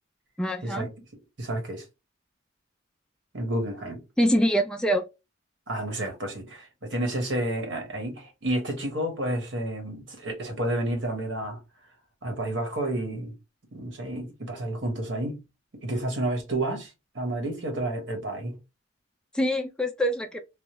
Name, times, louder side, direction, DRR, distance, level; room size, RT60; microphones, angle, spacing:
voice 1, 0.4-0.9 4.2-5.0 19.3-20.4, equal, 5° left, 0.3 m, -24 dB
voice 2, 1.4-1.8 3.3-4.0 5.7-11.6 12.2-13.3 13.7-15.4 15.7-18.6, right 1 dB, 65° right, 1.1 m, -30 dB
3.4 x 2.0 x 2.9 m
head